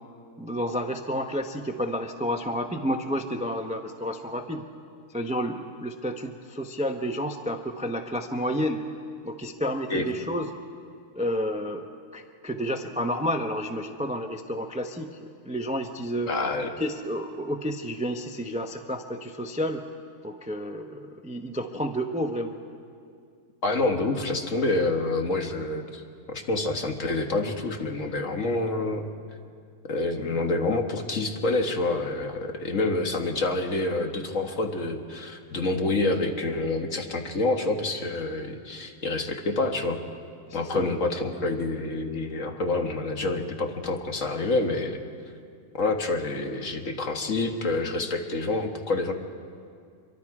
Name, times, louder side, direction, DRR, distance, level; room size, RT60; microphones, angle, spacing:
voice 1, 0.4-4.7 5.1-8.8 9.2-10.5 11.2-11.9 12.1-16.3 16.8-19.8 20.2-22.6 40.5-41.0, equal, 10° right, 5 dB, 0.4 m, -30 dB
voice 2, 16.3-16.7 23.6-26.0 26.3-29.0 29.9-40.0 40.5-45.0 45.7-49.1, left 2 dB, 45° left, 4 dB, 1.7 m, -27 dB
26.0 x 23.0 x 4.9 m, 2.3 s
omnidirectional pair, 1.9 m